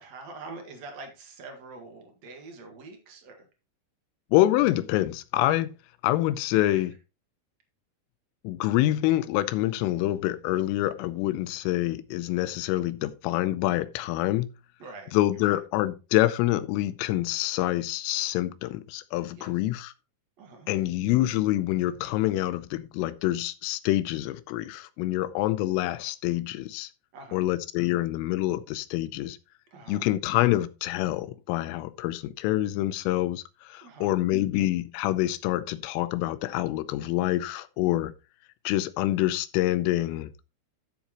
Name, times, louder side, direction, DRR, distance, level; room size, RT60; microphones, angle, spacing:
voice 1, 0.0-3.4 6.5-6.9 14.8-15.1 15.4-15.6 19.3-19.6 20.4-20.7 27.1-27.4 29.7-30.1 33.8-34.1, right 3 dB, 75° right, 1.5 m, -44 dB
voice 2, 4.3-5.7 6.0-6.9 8.4-14.5 15.1-19.9 20.7-26.9 27.3-29.4 29.9-38.1 38.6-40.3, left 15 dB, 85° left, 3.2 m, -26 dB
13.0 x 7.4 x 3.0 m
omnidirectional pair, 6.0 m